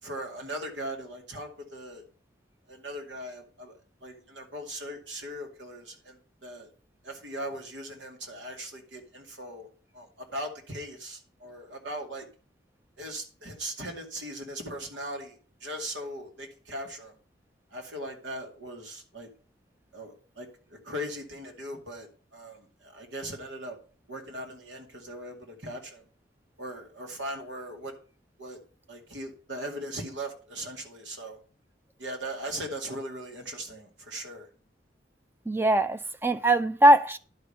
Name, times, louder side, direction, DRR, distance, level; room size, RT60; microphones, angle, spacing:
voice 1, 0.0-2.0 2.7-6.7 7.0-9.7 9.9-12.3 13.0-17.2 17.7-19.3 19.9-23.8 24.1-26.1 26.6-27.9 28.4-28.6 28.9-31.4 32.0-34.5, right 1 dB, 90° right, 2.3 m, -39 dB
voice 2, 35.5-37.2, right 1 dB, 10° right, 0.5 m, -21 dB
11.0 x 5.1 x 5.6 m
head